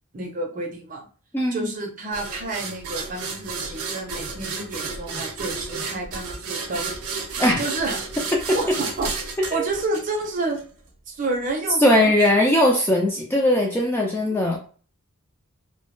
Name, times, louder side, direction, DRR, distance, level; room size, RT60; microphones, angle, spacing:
voice 1, 0.1-1.1 1.5-6.9 7.3-8.0 8.5-9.1 9.5-10.6 11.1-12.1 14.3-14.4, right 2 dB, 35° right, 1 dB, 0.6 m, -29 dB
voice 2, 1.3-1.7 7.4-7.6 9.5-9.6 11.8-14.6, left 1 dB, 10° left, -1 dB, 0.3 m, -19 dB
sound 1, 2.1-10.6, right 4 dB, 80° right, 0.6 m, -32 dB
2.2 x 2.1 x 3.0 m, 0.40 s
head